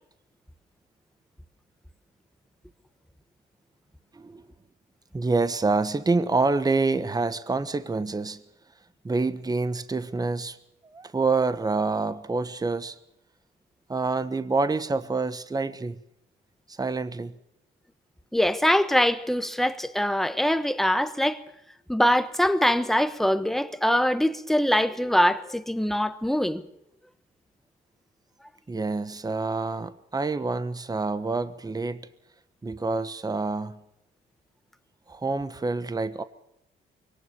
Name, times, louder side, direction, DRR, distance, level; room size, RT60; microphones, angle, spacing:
voice 1, 5.1-8.4 9.0-10.6 10.8-13.0 13.9-16.0 16.7-17.4 28.7-32.1 32.6-33.8 35.1-36.2, right 3 dB, 20° right, 1.2 m, -27 dB
voice 2, 18.3-21.4 21.9-26.6, equal, ahead, 1.3 m, -23 dB
23.0 x 18.5 x 6.8 m
cardioid pair, 90°, 20 cm